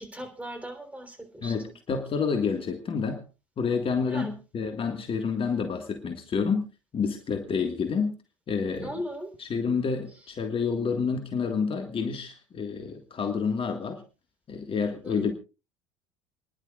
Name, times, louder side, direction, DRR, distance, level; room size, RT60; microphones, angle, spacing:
voice 1, 0.0-1.5 4.1-4.3 8.8-9.3 15.0-15.3, equal, 10° right, 4 dB, 3.6 m, -37 dB
voice 2, 1.4-3.2 3.6-6.7 6.9-8.2 8.5-9.0 9.4-14.0 14.5-15.3, left 5 dB, 35° left, 6 dB, 1.7 m, -29 dB
28.5 x 11.0 x 2.4 m, 0.31 s
hypercardioid pair, 70°, 16 cm